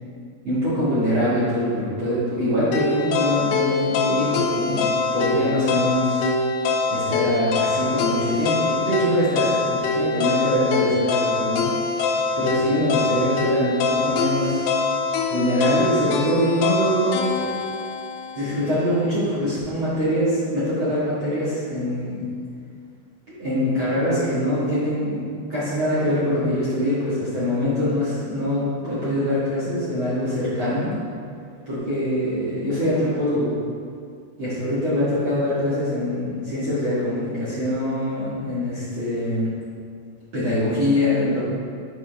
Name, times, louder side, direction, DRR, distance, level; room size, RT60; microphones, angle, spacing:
voice 1, 0.4-6.3 6.9-11.7 12.4-14.6 15.3-17.5 18.3-22.3 23.3-30.9 31.6-33.5 34.4-39.5 40.3-41.4, equal, 55° right, -10 dB, 1.4 m, -23 dB
sound 1, 2.7-18.8, left 4 dB, 85° left, 2.7 m, -24 dB
9.5 x 5.2 x 3.4 m, 2.2 s
omnidirectional pair, 4.8 m